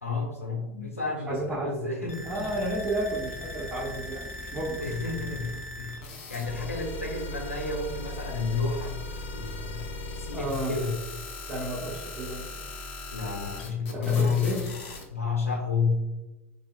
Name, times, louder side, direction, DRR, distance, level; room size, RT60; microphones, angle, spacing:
voice 1, 0.0-2.5 3.5-3.6 4.8-9.0 9.3-9.9 10.2-10.9 13.1-14.5 15.1-16.0, left 4 dB, 90° left, -2 dB, 1.0 m, -30 dB
voice 2, 1.3-1.7 2.2-4.8 10.3-10.7 11.5-12.5 13.9-14.6, right 1 dB, 20° right, -8 dB, 1.2 m, -32 dB
sound 1, 2.1-15.0, left 2 dB, 60° left, 0.9 m, -39 dB
4.1 x 4.0 x 2.2 m, 1.1 s
figure-of-eight pair, 80°, 7 cm